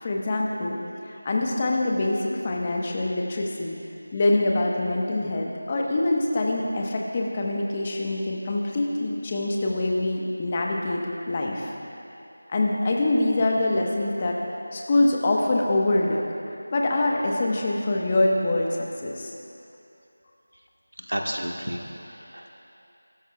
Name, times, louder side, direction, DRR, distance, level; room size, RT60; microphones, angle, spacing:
voice 1, 0.0-0.8 1.1-3.8 4.1-11.7 12.5-14.4 14.7-19.3, left 2 dB, 25° left, -1 dB, 1.2 m, -25 dB
voice 2, 21.1-22.6, equal, 85° right, 1 dB, 1.6 m, -32 dB
26.5 x 13.5 x 2.4 m, 2.7 s
figure-of-eight pair, 170°, 0 cm